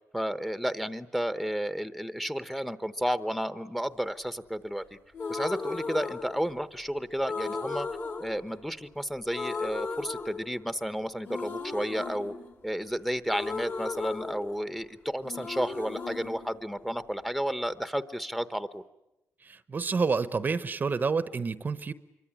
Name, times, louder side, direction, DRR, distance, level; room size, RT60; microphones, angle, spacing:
voice 1, 0.1-5.0 5.3-7.9 8.2-12.3 12.6-18.8, equal, 5° left, 12 dB, 1.0 m, -32 dB
sound 1, 5.1-6.8 7.2-9.0 9.3-10.9 11.2-15.0 15.2-17.3, left 4 dB, 45° left, 3.1 m, -36 dB
voice 2, 19.4-21.9, right 4 dB, 35° right, 14 dB, 0.9 m, -29 dB
26.0 x 23.5 x 9.9 m, 0.92 s
cardioid pair, 105°, 5 cm